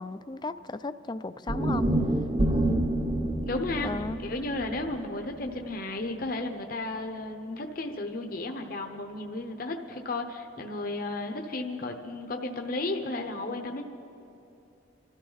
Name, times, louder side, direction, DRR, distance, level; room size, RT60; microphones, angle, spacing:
voice 1, 0.0-1.9 3.8-4.2, left 3 dB, 20° left, 13 dB, 0.3 m, -35 dB
sound 1, 1.5-5.7, right 1 dB, 25° right, 0.7 m, -28 dB
voice 2, 3.5-3.9 4.2-13.8, left 2 dB, 45° left, 4 dB, 0.9 m, -33 dB
26.0 x 13.5 x 4.0 m, 2.9 s
head